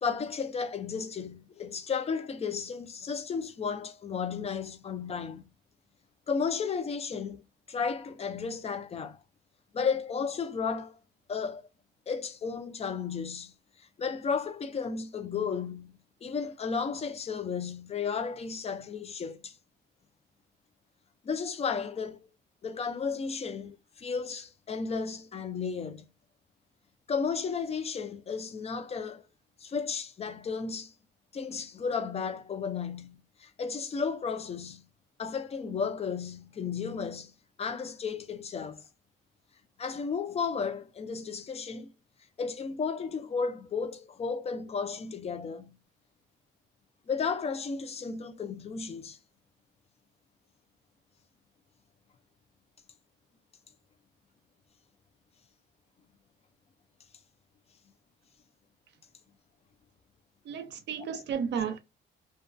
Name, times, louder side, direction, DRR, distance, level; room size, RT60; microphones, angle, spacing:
voice 1, 0.0-5.5 6.3-7.4 7.7-9.2 9.7-11.0 11.3-11.6 12.1-13.5 13.8-19.6 21.2-22.3 22.6-26.1 27.1-29.2 29.6-30.9 31.3-34.8 35.2-37.3 37.6-38.8 39.8-41.9 42.4-45.8 47.1-49.2 61.0-61.2, left 5 dB, 30° left, 0.4 m, -33 dB
voice 2, 60.5-61.8, right 7 dB, 60° right, 0.4 m, -33 dB
2.3 x 2.2 x 2.5 m
cardioid pair, 90°, 20 cm